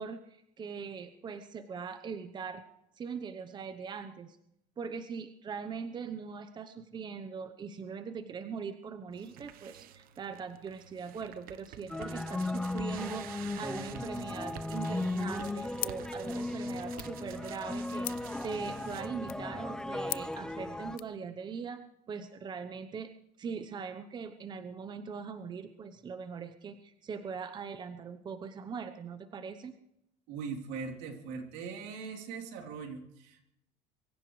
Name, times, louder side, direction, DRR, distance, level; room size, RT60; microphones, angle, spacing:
voice 1, 0.0-2.6 3.0-4.4 4.8-23.1 23.4-29.7, right 6 dB, 25° right, 9 dB, 0.9 m, -41 dB
sound 1, 9.1-19.1, right 11 dB, 55° right, 1.0 m, -50 dB
sound 2, 11.9-21.0, left 2 dB, 5° left, 0.6 m, -36 dB
sound 3, 15.8-21.2, left 18 dB, 55° left, 0.5 m, -44 dB
voice 2, 30.3-33.4, right 5 dB, 75° right, 2 dB, 3.6 m, -40 dB
23.5 x 15.5 x 3.2 m, 0.80 s
cardioid pair, 140°, 18 cm